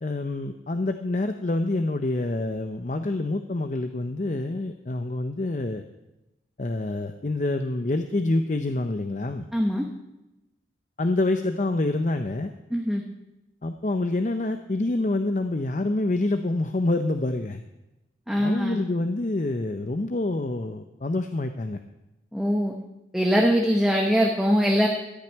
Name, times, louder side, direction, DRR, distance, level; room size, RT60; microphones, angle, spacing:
voice 1, 0.0-5.8 6.6-9.5 11.0-12.5 13.6-17.6 18.4-21.8, left 2 dB, 40° left, 7 dB, 0.6 m, -27 dB
voice 2, 9.5-9.8 12.7-13.0 18.3-18.8 22.3-22.7 23.1-24.9, equal, ahead, 0 dB, 0.9 m, -22 dB
14.0 x 5.9 x 9.1 m, 0.98 s
head